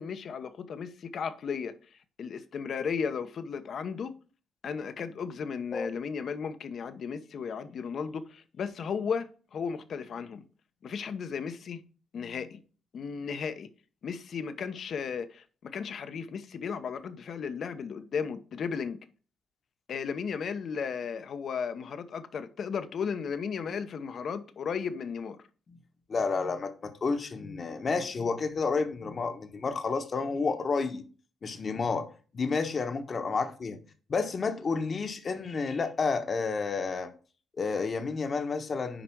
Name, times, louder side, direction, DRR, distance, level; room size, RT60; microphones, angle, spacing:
voice 1, 0.0-4.1 4.6-10.4 10.8-11.8 12.1-12.6 12.9-13.7 14.0-19.0 19.9-25.4, left 6 dB, 55° left, 1.0 m, -35 dB
voice 2, 26.1-31.0 31.4-32.1 32.3-33.8 34.1-37.1 37.6-39.0, left 4 dB, 40° left, 1.3 m, -30 dB
7.9 x 5.1 x 4.7 m
cardioid pair, 90°, 0 cm